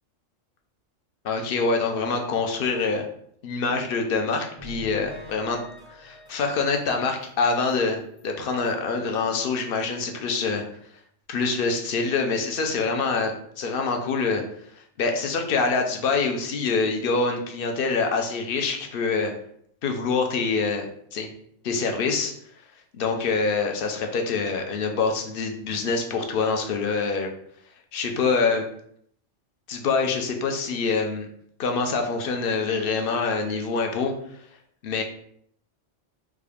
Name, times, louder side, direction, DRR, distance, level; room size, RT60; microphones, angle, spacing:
voice 1, 1.2-3.0 3.4-5.6 5.9-10.6 11.3-14.4 15.0-19.3 19.8-20.8 21.1-21.3 21.6-22.3 22.9-27.3 27.9-28.6 29.7-31.3 31.6-34.1 34.8-35.0, left 4 dB, 60° left, 3 dB, 0.6 m, -25 dB
sound 1, 4.6-7.3 7.7-7.8 8.2-8.3 8.7-8.8, equal, 15° left, 0.6 m, -43 dB
3.5 x 2.3 x 3.4 m, 0.67 s
omnidirectional pair, 1.3 m